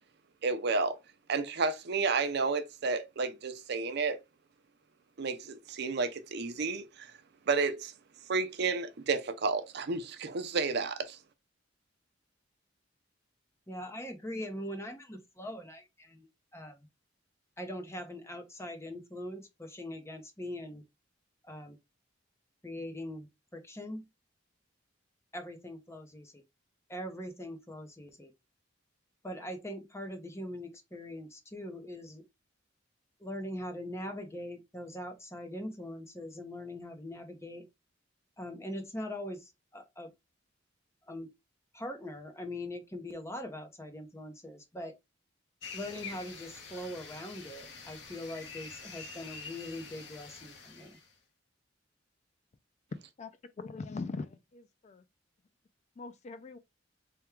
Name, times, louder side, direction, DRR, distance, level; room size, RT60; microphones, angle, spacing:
voice 1, 0.4-1.0 1.3-4.2 5.2-7.1 7.5-7.9 8.3-11.2, right 4 dB, 60° right, 0.6 m, -31 dB
voice 2, 13.7-16.3 16.5-16.9 17.6-20.8 21.4-21.8 22.6-23.3 23.5-24.0 25.3-26.4 26.9-28.3 29.2-32.2 33.2-37.6 38.4-40.1 41.1-41.3 41.7-44.9 45.7-51.0, left 1 dB, 15° left, 0.7 m, -42 dB
sound 1, 45.6-51.1, left 5 dB, 70° left, 1.0 m, -46 dB
voice 3, 53.6-55.0 56.0-56.6, left 3 dB, 35° left, 0.3 m, -41 dB
3.5 x 2.2 x 4.4 m
head